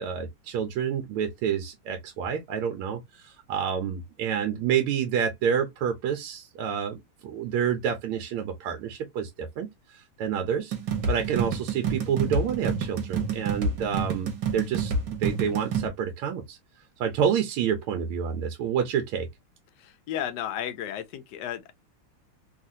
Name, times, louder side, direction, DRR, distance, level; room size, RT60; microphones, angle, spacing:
voice 1, 0.0-7.0 7.2-9.7 9.9-10.8 11.1-14.9 15.2-16.6 17.0-19.3, right 8 dB, 80° right, 1.5 m, -28 dB
sound 1, 10.7-15.9, right 5 dB, 60° right, 1.5 m, -28 dB
voice 2, 19.8-21.7, left 10 dB, 85° left, 0.9 m, -33 dB
3.8 x 2.4 x 2.6 m
omnidirectional pair, 2.4 m